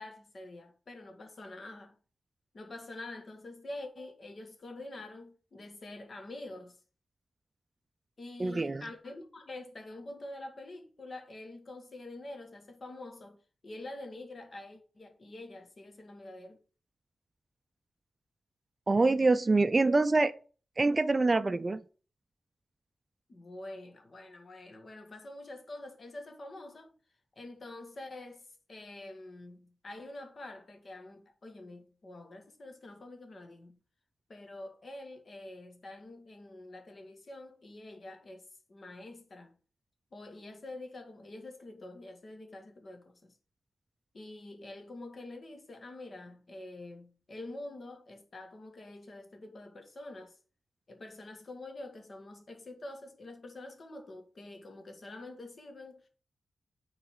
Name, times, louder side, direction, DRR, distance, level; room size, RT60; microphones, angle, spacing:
voice 1, 0.0-2.0 2.5-6.8 8.2-16.6 23.3-26.9 27.4-33.8 34.3-39.6 40.1-43.4 44.1-50.4 50.9-56.1, left 2 dB, 45° left, 2.0 m, -46 dB
voice 2, 8.4-8.8 18.9-20.3 20.8-21.8, right 3 dB, 30° right, 0.4 m, -25 dB
9.3 x 4.0 x 4.9 m
wide cardioid pair, 100°, 0 cm